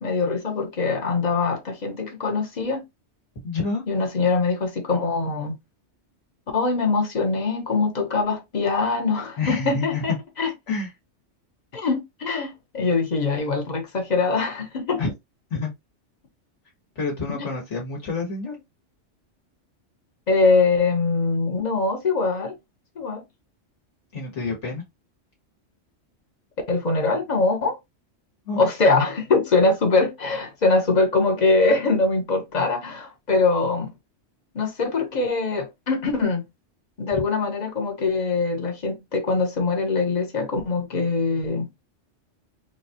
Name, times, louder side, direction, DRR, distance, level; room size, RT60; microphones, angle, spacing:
voice 1, 0.0-2.8 3.9-5.5 6.5-10.5 11.7-15.0 17.3-17.5 20.3-22.6 23.0-23.2 26.7-27.8 28.6-33.9 34.5-36.4 37.0-41.7, left 3 dB, 40° left, 1.0 m, -23 dB
voice 2, 3.4-3.8 9.4-10.0 10.7-10.9 15.0-15.1 15.5-15.7 16.9-18.6 24.1-24.8 28.4-28.6, left 3 dB, 70° left, 1.5 m, -28 dB
4.2 x 2.3 x 2.7 m
omnidirectional pair, 1.2 m